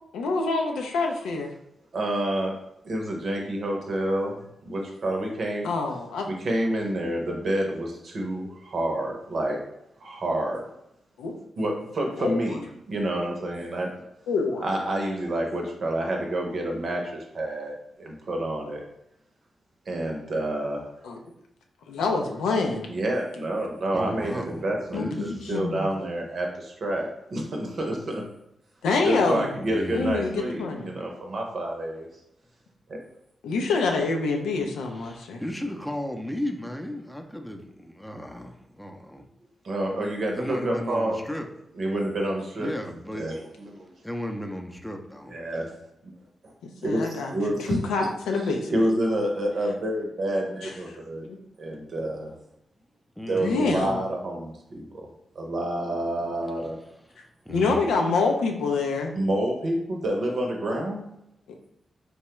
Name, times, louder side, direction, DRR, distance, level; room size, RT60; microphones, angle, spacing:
voice 1, 0.1-1.5 5.6-6.3 11.2-11.3 12.2-12.6 14.3-14.7 21.0-21.2 21.9-22.9 24.9-25.9 28.8-29.5 29.9-30.9 33.4-35.4 46.6-47.3 47.7-48.9 50.6-50.7 51.2-51.4 53.4-54.0 57.5-59.1, left 4 dB, 85° left, 2 dB, 0.4 m, -26 dB
voice 2, 1.9-2.5 2.8-4.4 4.6-5.7 6.3-9.6 10.0-10.6 11.6-14.0 14.6-18.8 19.9-20.9 22.9-28.2 29.0-32.1 39.6-41.2 41.8-42.7 43.2-43.9 45.3-45.7 46.4-46.5 46.8-47.8 48.7-51.3 51.6-52.3 53.3-55.1 55.3-56.8 59.1-61.0, right 1 dB, 65° right, 1 dB, 0.7 m, -28 dB
voice 3, 23.9-25.6 29.6-30.2 34.9-39.2 40.3-41.5 42.6-43.3 44.0-45.3 53.2-53.9 57.5-57.8, left 1 dB, 5° left, 3 dB, 0.5 m, -35 dB
3.1 x 2.2 x 2.9 m, 0.81 s
supercardioid pair, 40°, 0 cm